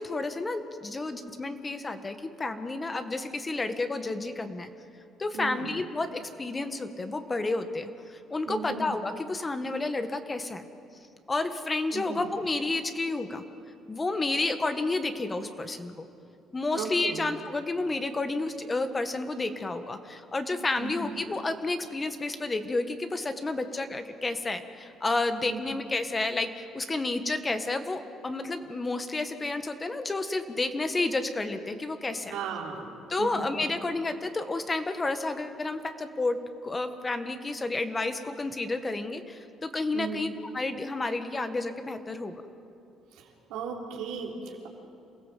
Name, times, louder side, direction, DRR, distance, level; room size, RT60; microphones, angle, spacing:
voice 1, 0.0-4.7 5.2-10.7 11.3-13.4 13.9-16.1 16.5-32.4 33.1-42.3, left 2 dB, 25° left, 8 dB, 1.6 m, -31 dB
voice 2, 5.3-5.7 8.5-8.9 11.9-12.2 16.7-17.2 20.8-21.1 25.5-25.6 32.3-32.9 33.2-33.4 39.9-40.3 43.1-44.7, right 5 dB, 85° right, -1 dB, 3.5 m, -36 dB
27.5 x 16.0 x 7.6 m, 2.6 s
supercardioid pair, 85°, 0 cm